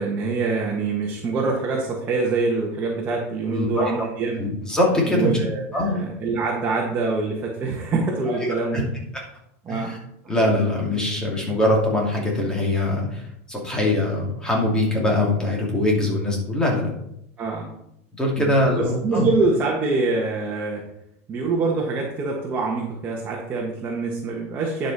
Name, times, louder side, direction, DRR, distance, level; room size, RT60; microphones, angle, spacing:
voice 1, 0.0-4.4 5.1-8.9 9.6-10.0 17.4-17.7 18.4-20.9 21.3-24.9, right 3 dB, 25° right, -2 dB, 1.6 m, -25 dB
voice 2, 3.5-4.1 4.4-5.4 5.7-5.9 8.7-8.8 9.7-10.0 10.3-16.9 18.2-19.3, left 1 dB, 10° left, -2 dB, 2.6 m, -22 dB
10.5 x 5.2 x 4.2 m, 0.78 s
supercardioid pair, 135°, 8 cm